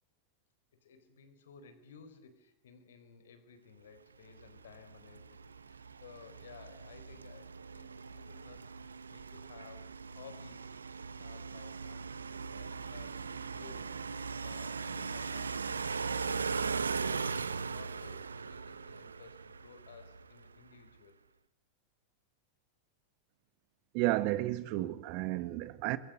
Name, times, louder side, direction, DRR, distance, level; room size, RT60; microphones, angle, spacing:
voice 1, 0.7-8.7 9.1-10.7 11.1-16.8 17.0-21.4, left 6 dB, 60° left, 4.4 m, -56 dB
sound 1, 4.4-20.5, right 5 dB, 75° right, 1.0 m, -39 dB
voice 2, 23.9-26.0, right 17 dB, 45° right, 1.5 m, -32 dB
27.0 x 23.0 x 6.7 m
figure-of-eight pair, 90°, 0 cm